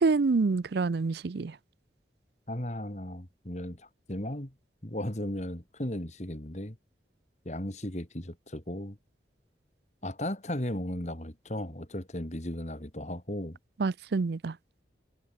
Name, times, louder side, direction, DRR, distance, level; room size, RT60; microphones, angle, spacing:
voice 1, 0.0-1.5 13.8-14.5, right 4 dB, 65° right, 0.5 m, -27 dB
voice 2, 2.5-4.5 4.8-6.8 7.4-9.0 10.0-13.6, left 1 dB, 40° left, 2.7 m, -36 dB
head